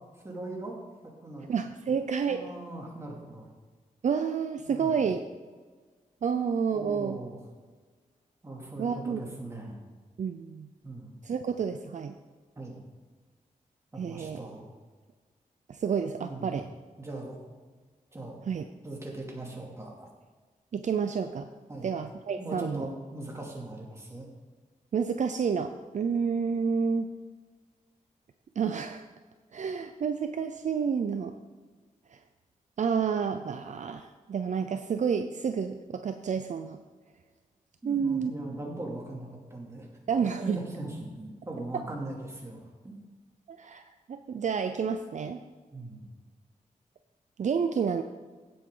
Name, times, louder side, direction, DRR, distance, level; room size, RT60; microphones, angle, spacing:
voice 1, 0.2-0.8 1.0-1.5 2.3-3.5 4.7-4.9 6.7-7.4 8.4-9.7 10.8-11.2 12.6-12.9 13.9-14.6 16.1-16.6 17.0-17.5 18.1-18.4 18.8-20.1 21.7-21.9 22.4-24.3 37.8-39.9 40.2-43.0 45.7-46.1, right 2 dB, 20° right, -2 dB, 2.7 m, -40 dB
voice 2, 1.5-2.4 4.0-5.2 6.2-7.2 8.8-9.2 10.2-10.7 11.2-12.2 14.0-14.4 15.7-16.6 18.5-18.6 20.7-21.5 21.8-22.9 24.9-27.1 28.6-29.0 29.5-31.3 32.1-32.2 32.8-36.8 37.8-38.3 40.1-40.6 41.7-41.9 43.5-43.8 44.1-45.4 47.4-48.0, right 6 dB, 60° right, 7 dB, 0.6 m, -29 dB
16.0 x 7.9 x 3.9 m, 1.4 s
wide cardioid pair, 135°, 14 cm